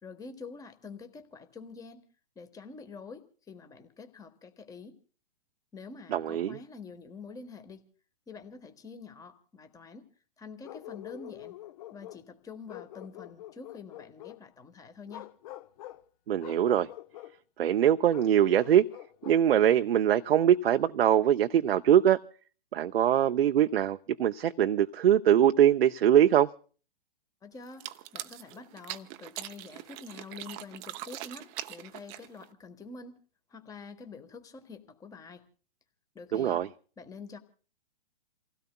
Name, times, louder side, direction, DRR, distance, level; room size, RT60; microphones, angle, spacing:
voice 1, 0.0-2.0 2.3-5.0 5.7-7.8 8.3-10.1 10.4-11.6 11.9-15.3 27.4-33.2 33.5-35.5 36.1-36.6 37.0-37.4, left 4 dB, 10° left, 1.2 m, -46 dB
voice 2, 6.1-6.6 16.3-16.9 17.6-18.9 19.3-22.2 22.7-26.5 36.3-36.7, right 10 dB, 75° right, 0.6 m, -23 dB
Bark, 10.6-12.3 12.7-14.4 15.1-16.0 16.4-17.3 18.1-19.8, left 14 dB, 40° left, 0.7 m, -46 dB
sound 1, 27.7-32.5, right 15 dB, 25° right, 0.6 m, -42 dB
29.0 x 16.5 x 2.2 m
hypercardioid pair, 125°, 30 cm